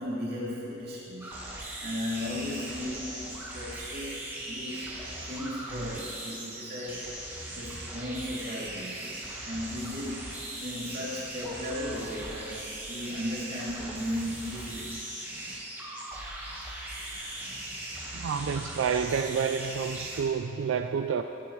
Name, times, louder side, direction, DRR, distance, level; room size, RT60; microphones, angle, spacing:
voice 1, 0.0-1.3 1.8-4.9 5.2-7.2 7.5-9.0 9.4-10.3 10.6-15.0, left 1 dB, 50° right, -7 dB, 2.9 m, -36 dB
sound 1, 1.2-20.2, right 1 dB, 10° right, 1.4 m, -39 dB
voice 2, 18.1-21.2, right 6 dB, 90° right, 7 dB, 0.4 m, -29 dB
15.0 x 10.0 x 3.2 m, 2.8 s
head